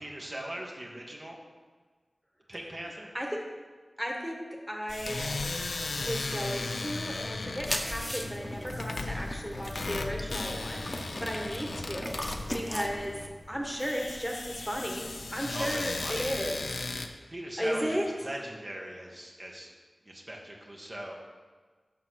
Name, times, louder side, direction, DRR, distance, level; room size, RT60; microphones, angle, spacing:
voice 1, 0.0-1.4 2.5-3.1 15.5-16.4 17.3-19.7 20.0-21.1, right 1 dB, 40° right, -2 dB, 1.5 m, -40 dB
voice 2, 4.0-5.4 6.0-13.1 13.5-16.6 17.6-18.0, equal, ahead, 0 dB, 1.4 m, -35 dB
sound 1, 4.9-17.1, left 3 dB, 85° left, 0.6 m, -37 dB
sound 2, 7.6-13.3, left 1 dB, 20° left, 1.0 m, -38 dB
7.4 x 5.8 x 6.4 m, 1.4 s
wide cardioid pair, 60°, 0 cm